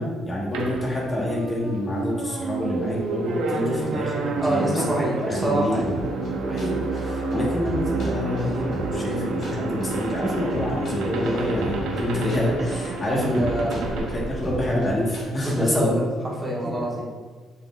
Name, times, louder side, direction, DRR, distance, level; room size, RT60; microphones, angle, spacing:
voice 1, 0.0-4.8 5.2-5.9 6.5-13.4 13.9-16.0 16.7-16.8, left 1 dB, 35° left, -3 dB, 1.3 m, -27 dB
sound 1, 0.5-15.1, right 3 dB, 75° right, 0.6 m, -29 dB
sound 2, 2.3-15.7, equal, 65° left, 1.2 m, -39 dB
voice 2, 4.4-5.8 7.3-7.5 13.1-13.8 15.4-17.1, right 1 dB, 25° right, -4 dB, 1.4 m, -26 dB
5.7 x 3.6 x 2.4 m, 1.4 s
hypercardioid pair, 55°, 0 cm